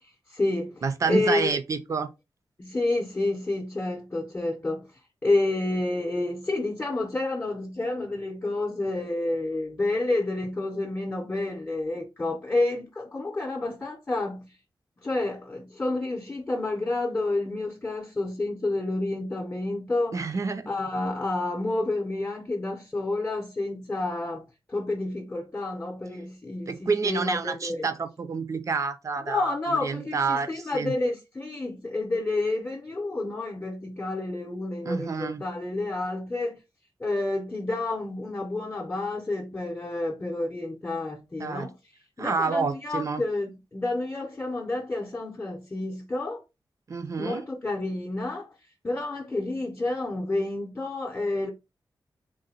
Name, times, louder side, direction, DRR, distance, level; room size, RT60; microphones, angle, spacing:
voice 1, 0.3-1.5 2.6-4.9 5.2-14.6 15.0-20.2 20.7-27.9 29.3-36.6 37.0-41.8 42.2-46.4 47.2-48.5 48.8-51.5, left 2 dB, 20° left, 0.7 m, -29 dB
voice 2, 0.8-2.1 20.1-20.7 26.7-30.9 34.8-35.4 41.4-41.7 42.2-43.2 46.9-47.4, right 4 dB, 40° right, 0.5 m, -28 dB
3.8 x 2.1 x 4.1 m
wide cardioid pair, 170°, 8 cm